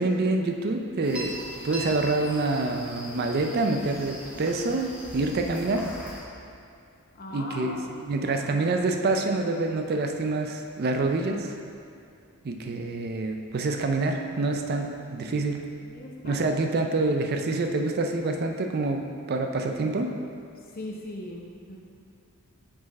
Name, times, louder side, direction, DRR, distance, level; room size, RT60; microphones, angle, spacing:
voice 1, 0.0-1.3 1.6-5.9 7.3-11.6 12.4-15.6 16.2-19.0 19.3-20.1, right 3 dB, 45° right, 4 dB, 0.4 m, -27 dB
sound 1, 1.0-6.2, equal, 5° right, 0.9 m, -40 dB
voice 2, 7.1-8.6 15.8-17.0 20.7-21.8, left 1 dB, 40° left, -1 dB, 0.8 m, -40 dB
6.1 x 5.1 x 4.1 m, 2.5 s
head